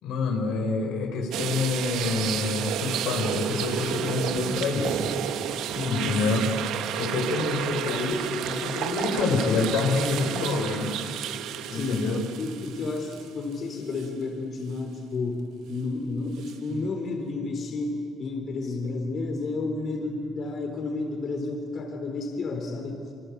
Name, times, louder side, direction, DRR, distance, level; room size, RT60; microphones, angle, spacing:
voice 1, 0.0-5.1 5.9-6.5 6.9-10.9 11.7-12.2, left 3 dB, 85° left, 3 dB, 5.2 m, -27 dB
sound 1, 1.3-13.5 14.0-14.1 16.4-16.5, right 10 dB, 85° right, 1.3 m, -31 dB
voice 2, 5.7-6.1 11.7-12.1 12.4-15.4 15.7-23.1, left 3 dB, 50° left, 3 dB, 3.8 m, -31 dB
27.5 x 24.5 x 8.6 m, 2.4 s
cardioid pair, 115°, 0 cm